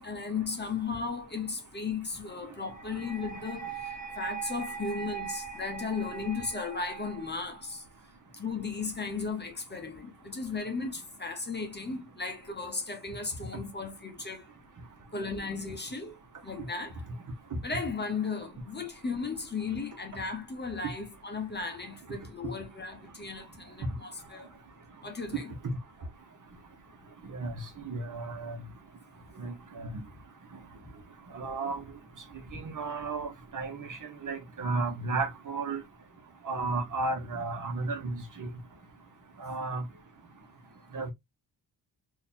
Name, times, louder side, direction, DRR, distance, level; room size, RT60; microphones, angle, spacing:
voice 1, 0.0-7.8 8.3-14.5 15.1-17.0 17.6-24.5 25.0-25.5, left 4 dB, 25° left, 0.8 m, -36 dB
sound 1, 2.7-7.7, right 7 dB, 20° right, 1.3 m, -41 dB
voice 2, 27.2-28.6 29.4-29.9 31.3-31.8 32.5-35.8 36.4-38.5 39.4-39.8 40.9-41.1, right 3 dB, 45° right, 1.1 m, -34 dB
3.8 x 2.7 x 2.8 m
wide cardioid pair, 135°, 42 cm